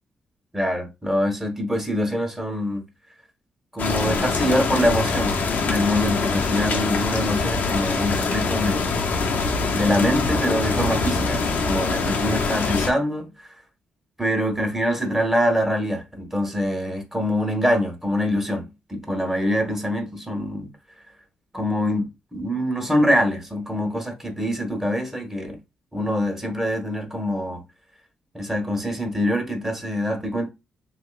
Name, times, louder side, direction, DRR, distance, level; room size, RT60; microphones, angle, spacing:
voice 1, 0.5-2.8 3.7-9.1 9.7-13.5 14.2-20.7 21.5-25.6 25.9-27.6 28.3-30.5, equal, 10° right, 1.3 m, -24 dB
sound 1, 3.8-12.9, left 4 dB, 55° left, 0.6 m, -24 dB
3.0 x 2.9 x 2.3 m
hypercardioid pair, 50°, 3 cm